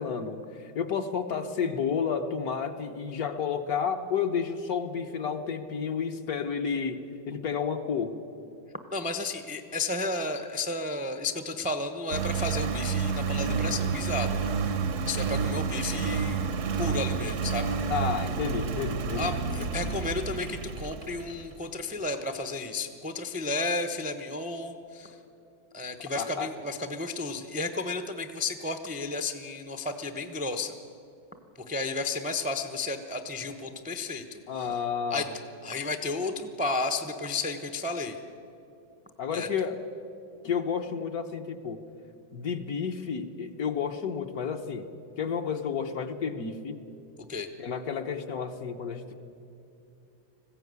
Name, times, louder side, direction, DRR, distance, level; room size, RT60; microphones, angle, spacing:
voice 1, 0.0-8.2 17.9-19.3 26.1-26.5 34.5-35.3 39.2-39.8 40.4-41.8 42.3-44.9 45.2-46.8 47.6-49.2, left 6 dB, 55° left, 6 dB, 1.3 m, -31 dB
voice 2, 8.9-14.7 15.1-16.4 16.8-17.7 19.2-25.2 25.7-30.7 31.7-34.7 35.1-35.3 35.6-38.2 39.3-39.5 47.3-47.5, left 3 dB, 10° right, 7 dB, 0.5 m, -32 dB
Engine, 12.1-21.5, right 5 dB, 55° right, 1.0 m, -30 dB
20.5 x 15.5 x 9.5 m, 2.6 s
omnidirectional pair, 2.1 m